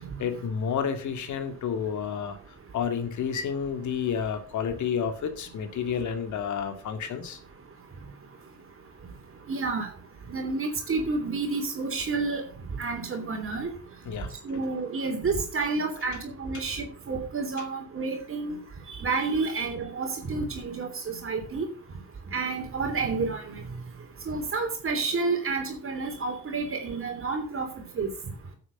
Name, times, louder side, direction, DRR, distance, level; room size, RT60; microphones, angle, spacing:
voice 1, 0.2-7.4 14.1-14.3 16.5-16.6 17.6-17.7, left 7 dB, 70° left, 8 dB, 2.1 m, -30 dB
voice 2, 9.5-9.9 10.3-12.4 12.7-13.7 14.4-18.6 18.9-21.7 22.3-23.6 24.3-27.7 27.9-28.1, right 4 dB, 45° right, 3 dB, 3.1 m, -30 dB
10.0 x 8.0 x 6.5 m, 0.40 s
cardioid pair, 90°, 30 cm